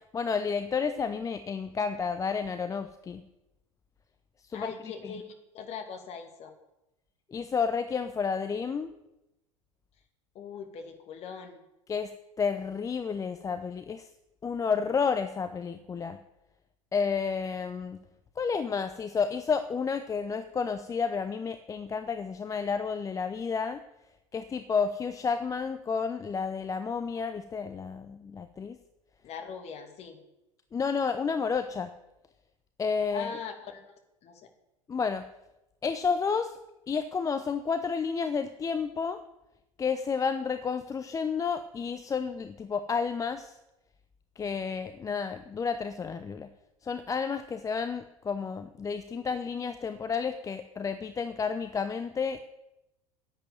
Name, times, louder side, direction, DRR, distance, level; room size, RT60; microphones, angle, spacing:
voice 1, 0.0-3.2 4.5-5.2 7.3-8.9 11.9-12.1 12.4-14.1 14.4-16.2 16.9-18.0 18.4-23.8 24.3-28.8 30.7-31.9 32.8-33.3 34.9-35.2 35.8-36.6 36.9-39.2 39.8-43.6 44.4-46.5 46.8-52.4, left 5 dB, 20° left, 10 dB, 0.8 m, -31 dB
voice 2, 4.5-6.6 10.3-11.6 29.2-30.2 33.1-33.9 34.2-34.5, left 6 dB, 35° left, 5 dB, 2.4 m, -41 dB
11.0 x 8.7 x 9.3 m, 0.93 s
figure-of-eight pair, 80°, 18 cm